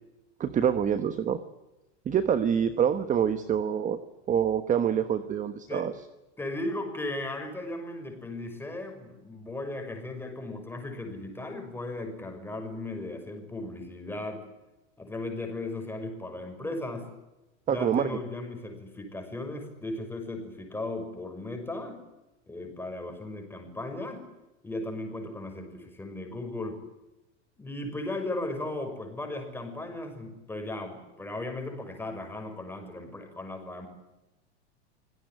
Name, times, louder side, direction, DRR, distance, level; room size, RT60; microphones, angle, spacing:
voice 1, 0.4-1.4 2.0-4.0 4.3-5.9 17.7-18.1, right 8 dB, 20° right, 11 dB, 1.2 m, -26 dB
voice 2, 6.4-14.5 15.0-17.1 17.7-22.0 22.5-24.3 24.6-26.8 27.6-33.9, left 2 dB, 5° left, 4 dB, 6.1 m, -36 dB
26.0 x 17.5 x 9.4 m, 1.0 s
supercardioid pair, 140°, 36 cm